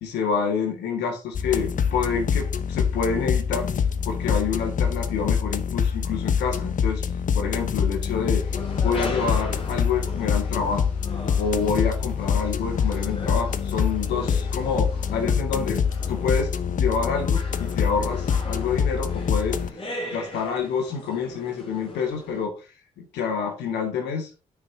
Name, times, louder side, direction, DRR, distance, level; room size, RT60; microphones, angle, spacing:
voice 1, 0.0-3.7 4.0-7.0 7.3-10.9 11.4-15.8 16.1-19.8 20.1-22.5 23.0-24.3, left 5 dB, 80° left, 3 dB, 1.9 m, -27 dB
sound 1, 1.3-19.7, left 7 dB, 50° left, 0.8 m, -25 dB
sound 2, 8.4-22.5, left 1 dB, 30° left, 2.9 m, -39 dB
9.5 x 6.2 x 2.7 m, 0.31 s
supercardioid pair, 55°, 17 cm